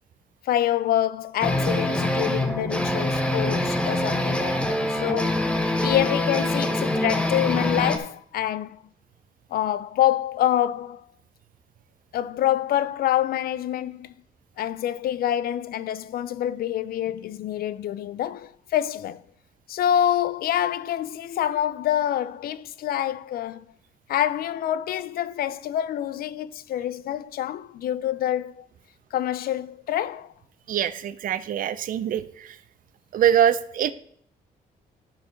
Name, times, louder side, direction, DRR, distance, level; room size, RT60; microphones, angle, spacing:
voice 1, 0.4-5.5 5.8-8.8 9.5-11.0 12.1-14.1 14.6-19.2 19.7-23.7 24.1-28.7 29.1-30.3, left 11 dB, 75° left, 0.5 m, -26 dB
sound 1, 1.4-8.0, left 1 dB, 5° left, 0.9 m, -24 dB
voice 2, 30.7-32.6 33.1-33.9, right 10 dB, 65° right, 0.6 m, -23 dB
12.0 x 4.6 x 5.1 m
cardioid pair, 145°, 15 cm